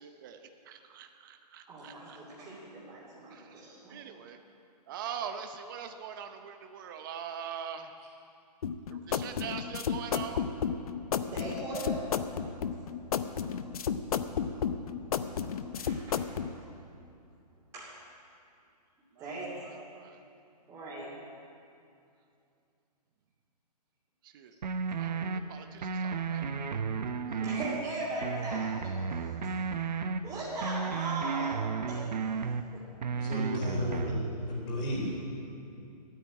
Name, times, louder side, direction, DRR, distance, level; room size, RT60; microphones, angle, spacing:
voice 1, 0.0-2.2 3.3-3.6 3.9-4.4 4.9-8.0 8.9-10.5 12.9-13.1 19.1-20.2 24.2-24.5 25.0-27.5, right 8 dB, 30° right, 7 dB, 0.7 m, -43 dB
voice 2, 1.7-4.0 11.2-12.2 15.7-16.3 17.7-18.0 19.2-19.9 20.7-21.2 27.4-29.6 30.2-32.9 33.1-34.1, right 2 dB, 15° right, -10 dB, 2.7 m, -39 dB
sound 1, 8.6-16.5, left 7 dB, 60° left, 0.7 m, -32 dB
sound 2, 24.6-25.4 25.8-27.8 28.2-30.2 30.6-32.6 33.0-34.2, right 5 dB, 90° right, 0.8 m, -33 dB
voice 3, 33.2-35.1, equal, 20° left, -4 dB, 3.7 m, -33 dB
13.0 x 9.2 x 8.6 m, 2.6 s
hypercardioid pair, 160°, 21 cm